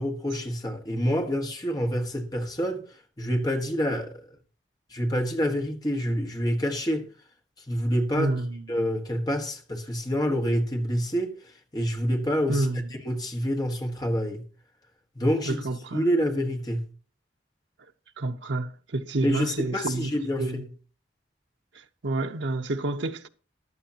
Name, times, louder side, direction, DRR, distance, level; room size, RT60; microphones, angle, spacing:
voice 1, 0.0-2.8 3.2-4.2 4.9-7.1 7.7-8.3 8.7-11.4 11.7-12.7 13.0-14.4 15.1-15.6 15.9-16.9 19.2-20.7, equal, 20° left, 1.5 m, -27 dB
voice 2, 8.2-8.7 12.5-12.9 15.4-16.0 18.2-20.1 20.4-20.6 22.0-23.3, right 2 dB, 75° right, 0.8 m, -29 dB
15.0 x 11.5 x 2.9 m
head